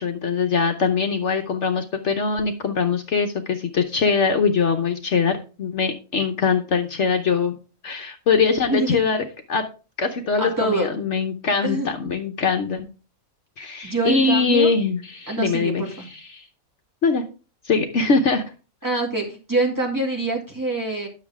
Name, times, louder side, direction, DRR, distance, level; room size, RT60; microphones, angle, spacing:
voice 1, 0.0-7.5 7.8-9.6 10.0-12.9 13.6-16.5 17.0-17.2 17.6-18.4, left 5 dB, 60° left, 5 dB, 1.1 m, -22 dB
voice 2, 8.7-9.0 10.4-10.9 11.6-11.9 13.8-14.7 15.3-16.1 18.8-21.1, right 2 dB, 15° right, -1 dB, 2.2 m, -25 dB
10.5 x 6.7 x 3.5 m, 0.34 s
omnidirectional pair, 1.5 m